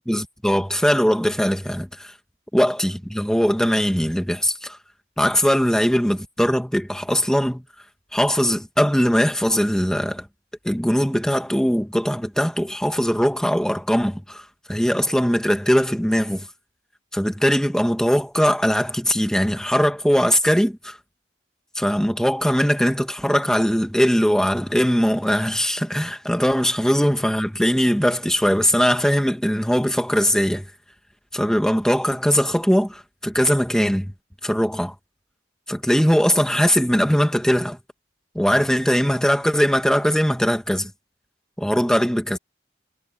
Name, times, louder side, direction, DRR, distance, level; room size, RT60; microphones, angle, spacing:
voice 1, 0.1-2.1 2.5-4.8 5.2-7.6 8.1-10.3 10.6-16.5 17.1-21.0 21.8-30.7 31.3-34.1 34.4-35.0 35.7-37.8 38.4-40.9 41.6-42.4, equal, 5° left, 1.9 m, -20 dB
head